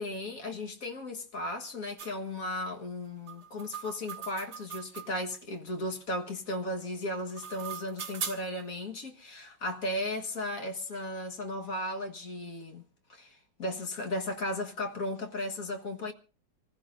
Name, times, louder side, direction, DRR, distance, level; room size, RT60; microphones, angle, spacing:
voice 1, 0.0-16.1, left 1 dB, 45° left, 1.8 m, -36 dB
sound 1, 2.0-2.2 3.3-5.4 7.1-8.6, right 7 dB, 55° right, 1.9 m, -40 dB
26.5 x 15.5 x 2.6 m
omnidirectional pair, 2.2 m